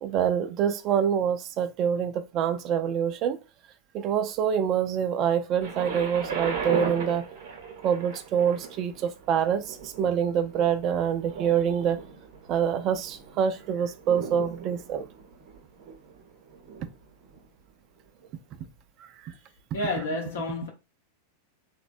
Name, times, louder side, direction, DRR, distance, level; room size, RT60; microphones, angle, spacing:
voice 1, 0.0-3.4 3.9-7.3 7.8-12.0 12.5-15.0, right 8 dB, 45° right, 0.4 m, -26 dB
Thunder, 5.6-17.5 18.2-18.3, right 5 dB, 65° right, 0.8 m, -38 dB
voice 2, 19.7-20.7, left 2 dB, 75° left, 0.6 m, -30 dB
3.1 x 2.2 x 2.5 m
hypercardioid pair, 100°, 0 cm